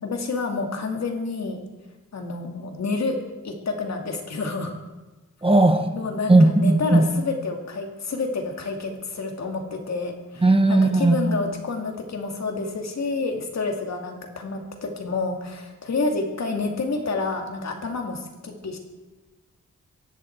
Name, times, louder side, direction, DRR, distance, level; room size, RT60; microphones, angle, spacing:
voice 1, 0.0-1.6 2.1-3.2 3.4-4.7 5.9-18.8, left 3 dB, 60° left, 3 dB, 2.4 m, -29 dB
voice 2, 5.4-5.9 6.3-7.0 10.4-11.2, right 2 dB, 20° right, 7 dB, 1.3 m, -17 dB
24.0 x 11.0 x 4.6 m, 1.2 s
wide cardioid pair, 145°, 30 cm